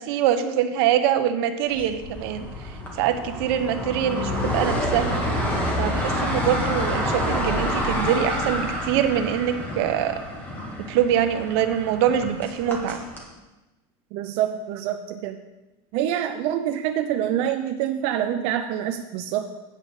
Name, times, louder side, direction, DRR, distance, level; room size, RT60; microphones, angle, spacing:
voice 1, 0.0-2.5 2.9-5.2 5.8-10.2 10.9-13.0, right 10 dB, 75° right, 8 dB, 0.9 m, -24 dB
sound 1, 1.7-13.2, left 1 dB, 15° left, 1.7 m, -28 dB
voice 2, 14.1-15.4 15.9-19.5, right 10 dB, 50° right, 5 dB, 0.5 m, -26 dB
8.8 x 5.2 x 7.0 m, 1.1 s
cardioid pair, 170°, 13 cm